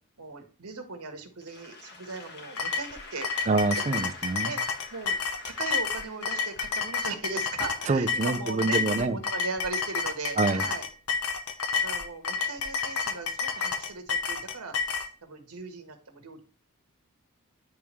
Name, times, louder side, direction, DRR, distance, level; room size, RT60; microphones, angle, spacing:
voice 1, 0.2-3.5 4.4-4.6 4.9-5.2 5.4-10.9 11.8-16.4, right 4 dB, 80° right, 1.3 m, -38 dB
Applause / Crowd, 1.4-7.8, left 3 dB, 50° left, 1.4 m, -48 dB
sound 1, 2.6-15.1, left 5 dB, 70° left, 0.8 m, -30 dB
voice 2, 3.5-4.5 7.9-9.2 10.4-10.6, right 3 dB, 30° right, 0.5 m, -26 dB
10.5 x 3.5 x 3.1 m
head